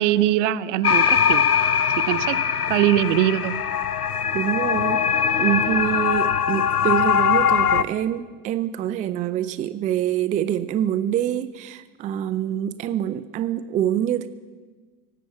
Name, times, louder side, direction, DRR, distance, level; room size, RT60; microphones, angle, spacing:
voice 1, 0.0-1.4 2.1-2.4 2.7-3.5, right 13 dB, 55° right, 12 dB, 0.8 m, -21 dB
sound 1, 0.8-7.8, left 7 dB, 90° left, 0.6 m, -21 dB
voice 2, 4.3-5.0 5.4-14.3, right 11 dB, 20° right, 12 dB, 0.4 m, -25 dB
17.5 x 8.5 x 9.3 m, 1.4 s
figure-of-eight pair, 75°, 45 cm